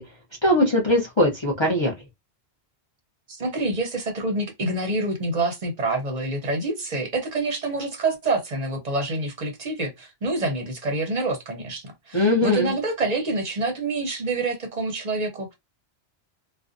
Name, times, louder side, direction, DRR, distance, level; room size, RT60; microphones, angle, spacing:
voice 1, 0.4-1.9 12.1-12.7, left 1 dB, 35° left, 0.5 m, -20 dB
voice 2, 3.3-15.5, right 2 dB, 45° right, 0.6 m, -27 dB
2.5 x 2.1 x 2.5 m
omnidirectional pair, 1.1 m